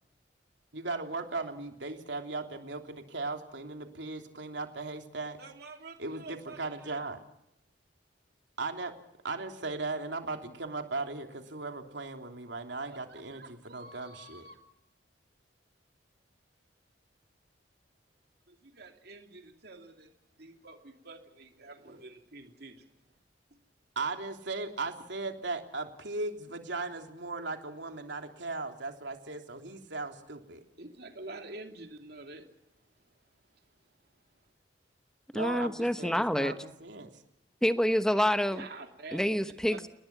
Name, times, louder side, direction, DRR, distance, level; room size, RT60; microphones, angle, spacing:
voice 1, 0.7-5.4 6.0-7.2 8.6-8.9 9.2-14.4 24.0-30.6 35.3-37.1, right 3 dB, 75° right, 4 dB, 3.2 m, -37 dB
voice 2, 5.4-7.0 12.9-14.6 18.5-20.1 20.4-22.8 30.8-32.4 38.5-39.2 39.7-39.8, right 2 dB, 60° right, 4 dB, 2.7 m, -48 dB
voice 3, 35.3-36.5 37.6-38.7 39.1-39.9, equal, 5° left, 10 dB, 1.1 m, -27 dB
29.5 x 20.0 x 6.0 m, 0.83 s
head